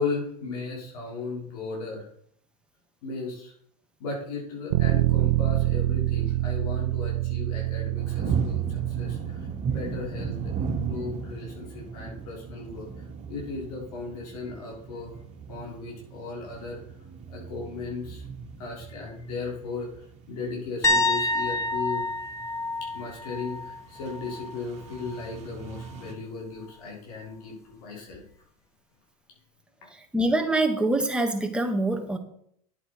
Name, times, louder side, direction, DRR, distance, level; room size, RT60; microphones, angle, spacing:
voice 1, 0.0-2.1 3.0-3.5 4.0-15.2 15.5-16.8 17.3-18.2 18.6-19.9 20.3-22.1 22.8-28.2, left 4 dB, 70° left, -3 dB, 5.4 m, -36 dB
Bass guitar, 4.7-11.0, right 14 dB, 70° right, 1.0 m, -27 dB
sound 1, 8.0-26.1, right 5 dB, 35° right, 2.6 m, -37 dB
sound 2, 20.8-24.6 24.9-25.3 28.1-28.2, left 2 dB, 15° left, 1.7 m, -28 dB
voice 2, 29.9-32.2, right 2 dB, 5° right, 4 dB, 2.0 m, -25 dB
9.9 x 8.6 x 5.3 m, 0.65 s
hypercardioid pair, 110°, 19 cm